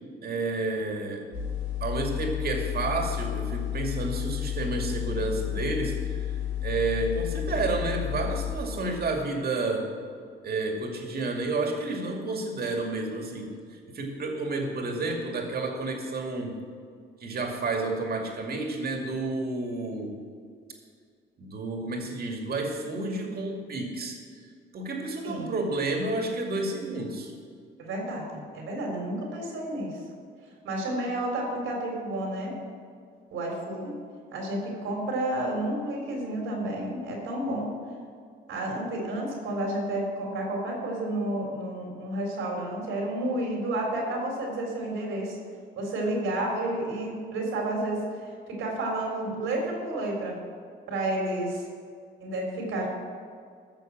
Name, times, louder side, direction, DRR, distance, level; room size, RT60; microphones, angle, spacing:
voice 1, 0.2-1.3 1.8-6.3 6.6-9.9 10.4-16.6 17.2-20.2 21.4-24.2 24.7-27.3, right 2 dB, 50° right, 2 dB, 2.4 m, -30 dB
sound 1, 1.3-8.5, left 11 dB, 80° left, 3.3 m, -31 dB
voice 2, 27.8-30.0 30.6-32.6 33.3-33.9 34.3-37.8 38.5-45.4 45.8-50.4 50.9-51.6 52.2-52.9, right 1 dB, 85° right, 0 dB, 3.9 m, -31 dB
14.0 x 6.6 x 7.6 m, 2.1 s
cardioid pair, 90°, 20 cm